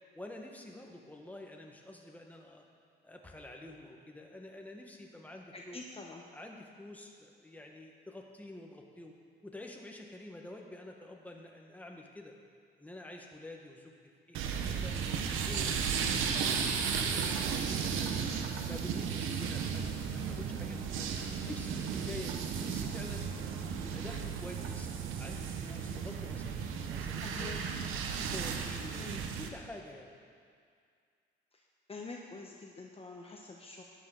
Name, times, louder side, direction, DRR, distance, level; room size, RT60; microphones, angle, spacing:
voice 1, 0.1-2.6 3.0-5.8 6.3-9.1 9.4-12.3 12.8-13.9 14.3-14.9 15.3-18.2 18.6-21.1 21.4-23.2 23.6-24.9 25.2-27.8 28.2-30.1, left 1 dB, 10° left, 1 dB, 1.7 m, -48 dB
voice 2, 5.5-6.2 27.2-27.6 29.0-29.2 31.5-31.6 31.9-33.8, left 3 dB, 30° left, 0 dB, 1.1 m, -46 dB
sound 1, 14.3-29.5, right 6 dB, 90° right, 1.0 m, -34 dB
15.5 x 10.5 x 4.1 m, 2.2 s
cardioid pair, 90°, 20 cm